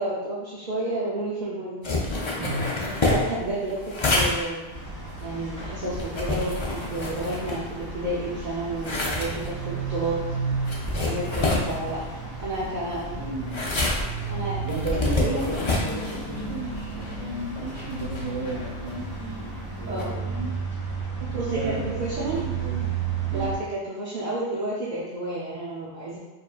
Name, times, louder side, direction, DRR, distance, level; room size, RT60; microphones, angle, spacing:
voice 1, 0.0-1.8 2.1-2.4 2.8-4.6 5.2-10.2 11.0-12.0 12.4-13.2 14.3-14.6 15.2-15.4 19.9-20.1 21.3-22.4 23.3-26.2, right 2 dB, 50° right, -7 dB, 0.7 m, -30 dB
sound 1, 1.8-8.1 8.4-20.0, left 2 dB, 40° left, 0.5 m, -29 dB
voice 2, 2.4-2.7 13.1-13.7 14.6-20.6 21.1-22.8 23.3-23.5, right 2 dB, 35° right, -5 dB, 1.1 m, -34 dB
sound 2, 4.7-23.6, right 4 dB, 90° right, 1.7 m, -33 dB
4.8 x 2.7 x 2.4 m, 1.2 s
omnidirectional pair, 1.1 m